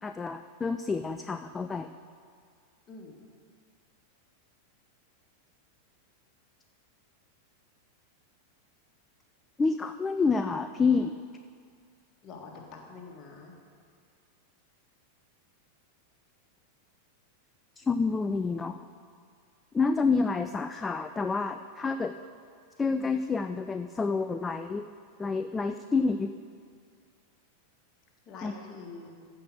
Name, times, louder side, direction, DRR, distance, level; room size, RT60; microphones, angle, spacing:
voice 1, 0.0-1.9 9.6-11.2 17.8-18.9 19.7-22.1 22.8-24.8 25.2-26.3 28.4-28.5, left 4 dB, 15° left, 9 dB, 0.3 m, -28 dB
voice 2, 2.9-3.2 12.2-13.6 28.3-29.3, left 4 dB, 30° left, 0 dB, 1.8 m, -45 dB
14.5 x 5.0 x 6.5 m, 2.1 s
figure-of-eight pair, 90°, 0 cm